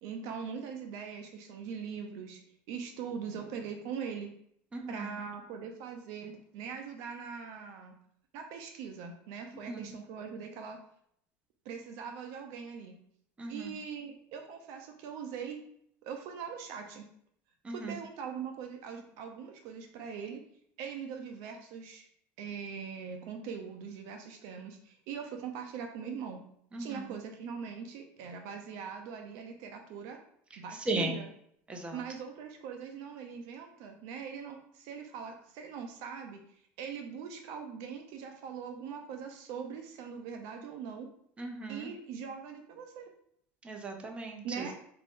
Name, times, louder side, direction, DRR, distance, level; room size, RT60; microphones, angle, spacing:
voice 1, 0.0-2.4 2.7-4.3 4.9-7.9 8.3-10.8 11.6-13.0 13.5-15.6 16.0-17.1 17.7-20.4 20.8-22.1 22.4-26.4 26.8-30.2 30.6-31.3 31.9-41.1 41.7-43.1 44.4-44.7, right 6 dB, 65° right, 4 dB, 0.6 m, -41 dB
voice 2, 4.7-5.1 9.7-9.8 13.4-13.7 17.6-17.9 26.7-27.0 30.9-31.1 31.7-32.0 41.4-41.9 43.6-44.7, right 2 dB, 20° right, 3 dB, 0.7 m, -36 dB
4.2 x 2.6 x 3.6 m, 0.68 s
supercardioid pair, 125°, 6 cm